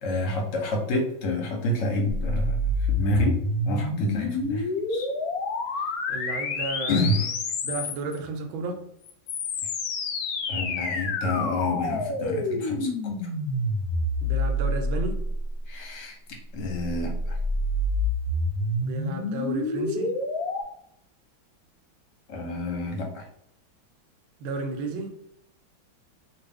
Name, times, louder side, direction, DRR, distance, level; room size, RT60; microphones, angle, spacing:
voice 1, 0.0-2.6 2.9-3.4 3.6-5.1 6.9-7.3 10.5-13.2 15.7-16.2 16.5-17.4 22.3-23.3, left 1 dB, 55° left, 1 dB, 0.8 m, -28 dB
sound 1, 2.1-8.2 9.0-15.6 16.7-20.6, left 2 dB, 85° left, 0.8 m, -28 dB
voice 2, 6.1-7.2 7.6-8.8 14.2-15.2 18.8-20.1 24.4-25.1, right 3 dB, 85° right, 4 dB, 1.4 m, -33 dB
3.0 x 2.4 x 3.4 m, 0.73 s
omnidirectional pair, 2.1 m